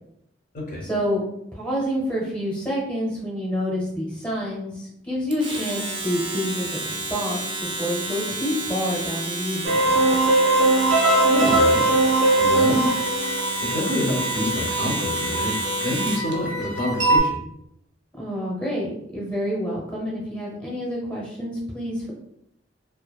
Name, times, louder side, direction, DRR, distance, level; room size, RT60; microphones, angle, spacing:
voice 1, 0.8-1.2 1.5-10.1 18.2-22.1, equal, 5° left, -6 dB, 0.7 m, -28 dB
Domestic sounds home sounds, 5.3-16.3, right 2 dB, 25° right, 0.4 m, -30 dB
sound 1, 9.6-17.2, right 2 dB, 85° right, 0.6 m, -21 dB
voice 2, 11.3-12.9 13.6-17.4, left 1 dB, 45° left, -3 dB, 0.6 m, -28 dB
2.4 x 2.3 x 2.2 m, 0.75 s
head